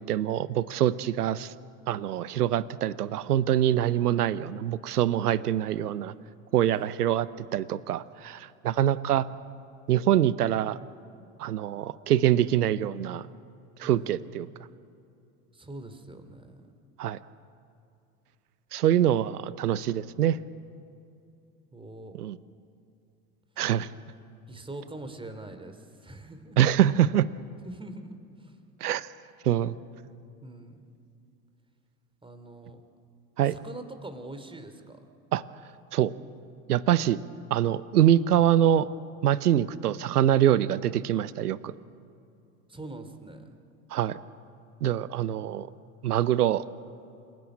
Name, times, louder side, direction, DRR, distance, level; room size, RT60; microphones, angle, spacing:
voice 1, 0.0-1.5 1.9-6.1 6.5-9.3 9.9-10.8 11.4-13.3 13.8-14.5 17.0-17.2 18.7-20.4 22.2-22.4 23.6-23.9 26.6-27.3 28.8-29.1 29.4-29.8 33.4-33.5 35.3-35.4 35.9-36.1 36.7-37.2 37.5-38.9 39.2-41.7 43.9-44.2 44.8-45.7 46.0-46.6, right 11 dB, 85° right, 17 dB, 0.8 m, -24 dB
voice 2, 6.7-7.1 9.0-9.2 13.8-14.3 15.5-16.7 21.7-22.1 24.5-26.6 27.6-28.6 30.4-30.9 32.2-32.8 33.4-35.0 42.7-43.6, right 2 dB, 10° right, 8 dB, 2.8 m, -43 dB
27.5 x 17.0 x 10.0 m, 2.6 s
hypercardioid pair, 85°, 45 cm